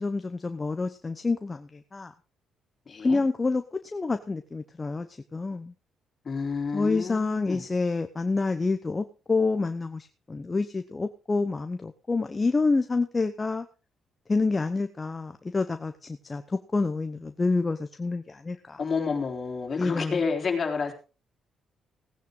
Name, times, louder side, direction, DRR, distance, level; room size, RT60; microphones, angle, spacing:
voice 1, 0.0-2.1 3.0-3.6 3.9-5.7 6.7-13.7 14.3-18.8 19.8-20.2, left 3 dB, 25° left, 8 dB, 0.9 m, -28 dB
voice 2, 2.9-3.2 6.2-7.6 18.8-20.9, left 5 dB, 40° left, 3 dB, 3.6 m, -29 dB
17.0 x 9.2 x 3.8 m, 0.34 s
cardioid pair, 90°, 0 cm